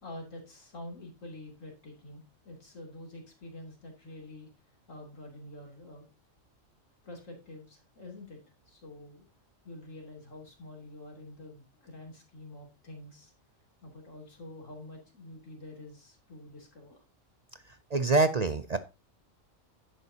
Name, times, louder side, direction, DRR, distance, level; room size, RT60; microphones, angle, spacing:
voice 1, 0.0-6.1 7.0-8.4 8.6-9.3 9.6-13.3 13.8-17.1, left 1 dB, 70° left, 1 dB, 3.4 m, -47 dB
voice 2, 17.9-18.8, right 3 dB, 50° right, 11 dB, 0.5 m, -25 dB
11.0 x 9.0 x 2.8 m, 0.27 s
omnidirectional pair, 1.4 m